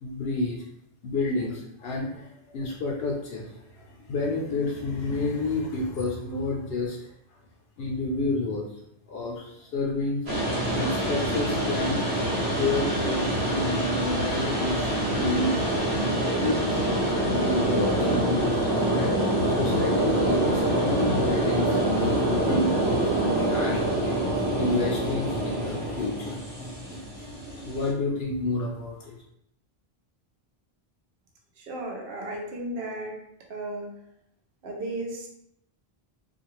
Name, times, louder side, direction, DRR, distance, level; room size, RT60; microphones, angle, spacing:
voice 1, 0.0-0.6 1.0-3.5 4.1-7.0 7.8-8.7 9.1-10.2 10.7-12.0 12.5-14.9 15.1-15.8 16.4-16.8 17.3-19.1 19.5-22.7 23.0-27.0 27.7-29.1, left 2 dB, 75° left, -3 dB, 0.8 m, -30 dB
sound 1, 10.3-27.9, right 1 dB, 90° right, 1.0 m, -25 dB
voice 2, 31.6-33.2 33.5-33.9 34.6-35.3, right 1 dB, 65° right, 0 dB, 0.8 m, -34 dB
2.5 x 2.3 x 3.0 m, 0.76 s
omnidirectional pair, 1.0 m